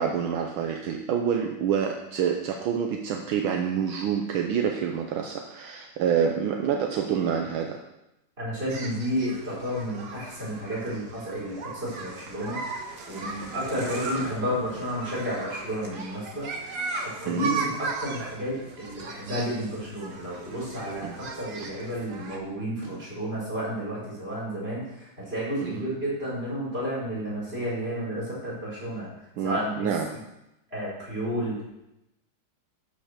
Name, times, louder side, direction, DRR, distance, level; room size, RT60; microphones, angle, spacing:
voice 1, 0.0-7.8 17.3-17.5 21.0-21.2 25.6-25.9 29.4-30.1, right 7 dB, 75° right, 3 dB, 1.6 m, -27 dB
voice 2, 8.4-12.6 13.1-16.7 17.2-29.1 29.4-29.9 30.7-31.6, equal, 25° right, -7 dB, 5.4 m, -31 dB
sound 1, 8.7-22.4, right 4 dB, 55° right, 1.9 m, -37 dB
12.0 x 5.7 x 6.5 m, 0.90 s
omnidirectional pair, 2.3 m